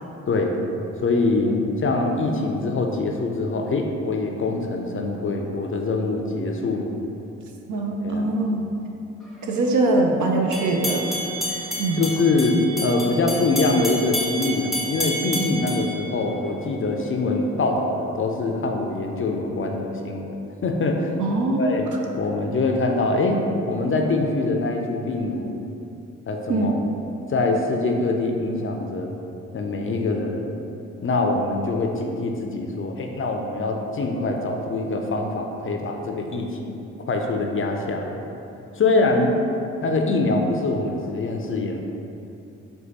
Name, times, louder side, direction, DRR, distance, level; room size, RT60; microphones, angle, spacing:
voice 1, 1.0-6.9 8.0-8.3 11.9-20.3 20.6-21.1 21.5-21.9 22.1-23.4 23.7-25.6 26.3-26.8 27.3-29.1 29.5-30.5 31.0-36.8 37.1-38.2 38.8-39.3 39.8-41.8, left 2 dB, 35° left, 2 dB, 0.5 m, -24 dB
voice 2, 7.7-8.7 9.5-11.1 11.8-12.0 15.4-15.5 21.2-21.8 26.5-26.7, right 2 dB, 60° right, 1 dB, 0.6 m, -22 dB
sound 1, 10.5-16.8, equal, ahead, 0.8 m, -30 dB
4.5 x 2.2 x 4.0 m, 2.8 s
hypercardioid pair, 40°, 34 cm